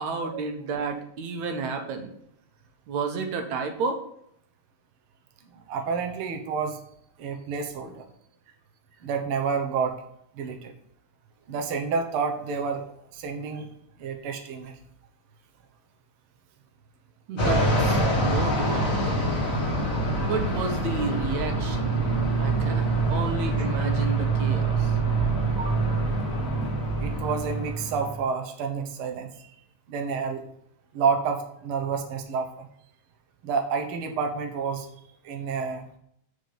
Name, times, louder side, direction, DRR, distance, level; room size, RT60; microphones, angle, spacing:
voice 1, 0.0-2.1 2.9-4.0 17.3-19.1 20.2-22.0 22.4-24.9, right 4 dB, 65° right, 4 dB, 2.1 m, -31 dB
voice 2, 5.7-6.8 7.2-8.0 9.0-10.0 10.4-10.7 11.5-12.9 13.1-13.7 14.0-14.7 25.2-25.3 25.6-25.8 27.0-29.3 29.9-30.4 30.9-32.7 33.4-34.9 35.2-35.9, right 5 dB, 85° right, 4 dB, 1.2 m, -29 dB
Fixed-wing aircraft airplane, 17.4-28.2, right 2 dB, 25° left, 2.5 m, -25 dB
8.0 x 5.2 x 6.9 m, 0.72 s
omnidirectional pair, 4.1 m